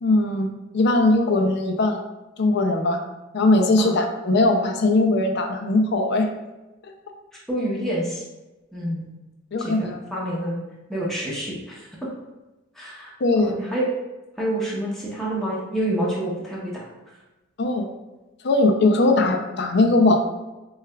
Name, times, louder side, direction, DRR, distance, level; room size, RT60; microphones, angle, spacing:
voice 1, 0.0-2.0 2.4-3.0 3.3-6.3 6.8-6.9 9.5-10.0 13.2-13.5 17.6-17.9 18.4-20.2, left 2 dB, 50° left, 5 dB, 0.4 m, -20 dB
voice 2, 7.5-8.2 8.7-9.1 9.6-10.6 10.9-11.8 12.8-13.1 13.4-13.9 14.4-16.7, right 1 dB, ahead, -6 dB, 0.7 m, -27 dB
6.4 x 2.3 x 2.2 m, 1.1 s
head